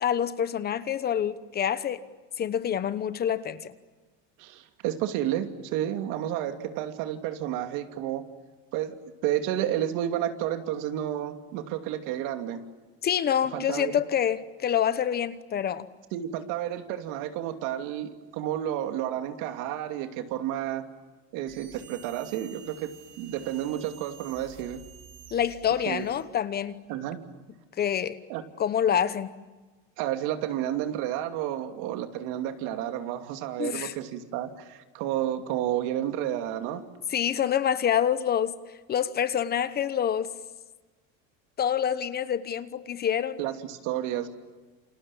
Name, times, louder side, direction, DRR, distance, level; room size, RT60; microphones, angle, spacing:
voice 1, 0.0-2.0 2.4-3.7 13.0-15.9 25.3-26.7 27.8-28.2 28.6-29.4 33.6-33.9 37.1-38.5 38.9-40.3 41.6-43.4, left 9 dB, 30° left, 1.0 m, -27 dB
voice 2, 4.4-8.3 8.7-12.6 13.5-14.0 16.1-20.9 21.3-24.8 25.9-26.1 26.9-27.2 28.3-28.4 30.0-36.8 43.4-44.3, right 11 dB, 65° right, 2.8 m, -31 dB
sound 1, 21.5-26.3, right 6 dB, 35° right, 6.0 m, -50 dB
29.0 x 27.5 x 7.3 m
cardioid pair, 150°, 33 cm